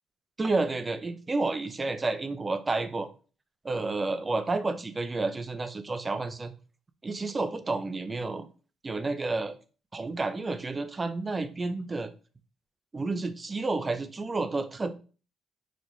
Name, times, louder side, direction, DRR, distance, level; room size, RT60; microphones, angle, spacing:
voice 1, 0.4-3.1 3.6-6.5 7.0-8.5 8.8-9.6 9.9-12.1 12.9-14.9, right 3 dB, 30° right, 10 dB, 0.5 m, -30 dB
3.9 x 2.5 x 3.0 m, 0.36 s
supercardioid pair, 60°, 0 cm